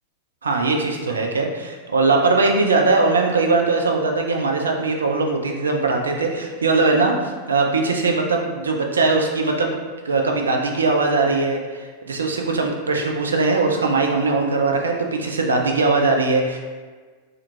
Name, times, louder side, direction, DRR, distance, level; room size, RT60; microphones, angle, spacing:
voice 1, 0.4-7.1 7.5-9.7 10.0-16.6, right 3 dB, 70° right, 2 dB, 0.4 m, -20 dB
3.5 x 2.2 x 2.9 m, 1.5 s
figure-of-eight pair, 90°, 0 cm